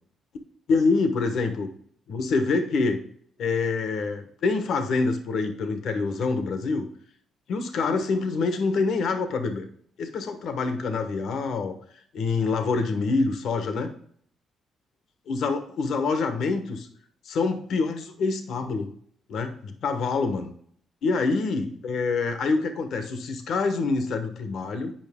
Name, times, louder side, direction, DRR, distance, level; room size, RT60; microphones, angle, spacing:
voice 1, 0.7-1.7 2.1-3.0 3.4-6.9 7.5-9.7 10.0-11.7 12.1-13.9 15.3-16.9 17.2-18.9 19.3-20.5 21.0-24.9, left 4 dB, 70° left, 7 dB, 1.0 m, -26 dB
8.9 x 5.3 x 3.6 m, 0.62 s
cardioid pair, 90°, 0 cm